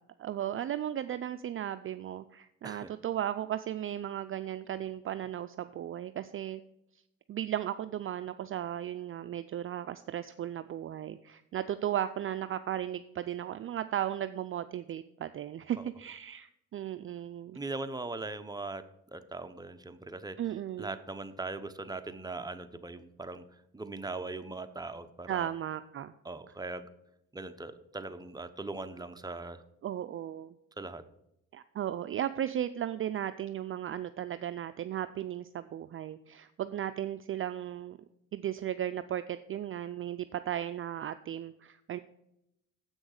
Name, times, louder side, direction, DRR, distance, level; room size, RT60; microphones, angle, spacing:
voice 1, 0.2-6.6 7.3-17.6 20.4-20.9 25.3-26.1 29.8-30.6 31.5-38.0 38.3-42.0, right 11 dB, 45° right, 11 dB, 0.4 m, -35 dB
voice 2, 17.5-18.8 19.1-20.4 20.8-23.4 23.7-25.5 26.2-26.9 27.3-29.6 30.8-31.0, right 3 dB, 15° right, 9 dB, 0.7 m, -40 dB
7.9 x 6.2 x 6.5 m, 0.83 s
cardioid pair, 90°, 30 cm